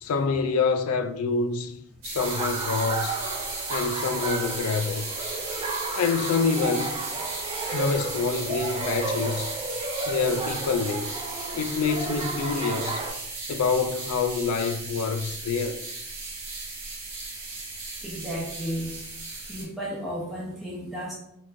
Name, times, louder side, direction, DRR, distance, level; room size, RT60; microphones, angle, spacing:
voice 1, 0.0-1.8 2.0-3.2 3.7-5.1 5.9-7.0 7.7-9.5 10.1-11.1 11.5-13.0 13.5-15.8, left 5 dB, 80° left, 0.4 m, -26 dB
sound 1, 2.0-19.6, right 3 dB, 60° right, 1.2 m, -35 dB
Laughter, 2.2-13.1, right 3 dB, 25° right, 0.4 m, -33 dB
voice 2, 18.0-18.9 19.5-21.1, equal, ahead, 0.8 m, -33 dB
4.3 x 3.0 x 2.6 m
head